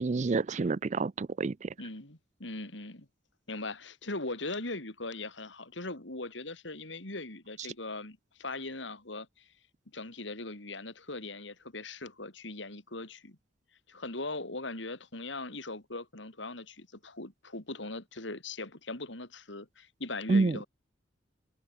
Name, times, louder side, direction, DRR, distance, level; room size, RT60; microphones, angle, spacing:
voice 1, 0.0-1.7 20.3-20.6, right 3 dB, 40° right, 0.4 m, -28 dB
voice 2, 1.8-3.1 3.5-9.5 9.9-13.4 13.9-20.7, left 2 dB, 75° left, 4.0 m, -40 dB
head